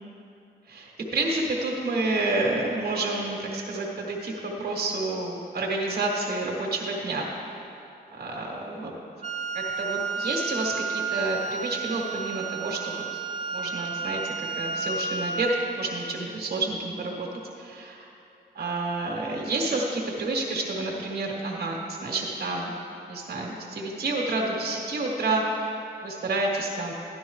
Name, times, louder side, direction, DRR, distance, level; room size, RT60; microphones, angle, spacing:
voice 1, 0.7-7.6 8.1-8.9 9.5-13.2 13.5-17.3 17.6-18.1 18.5-22.7 23.1-26.9, right 2 dB, 60° right, -1 dB, 1.6 m, -29 dB
Wind instrument woodwind instrument, 9.2-15.9, right 5 dB, 40° right, 0.6 m, -32 dB
13.0 x 11.0 x 3.2 m, 2.7 s
wide cardioid pair, 140°, 18 cm